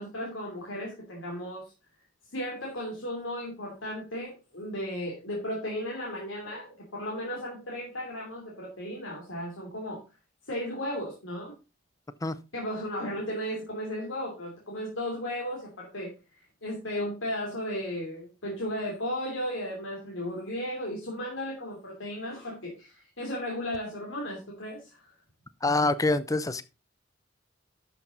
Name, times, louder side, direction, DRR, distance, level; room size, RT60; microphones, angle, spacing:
voice 1, 0.0-1.7 2.3-10.0 10.5-11.5 12.5-25.0, equal, 85° left, 3.0 m, -35 dB
voice 2, 25.6-26.6, left 2 dB, 20° left, 0.6 m, -25 dB
12.0 x 6.1 x 3.9 m
head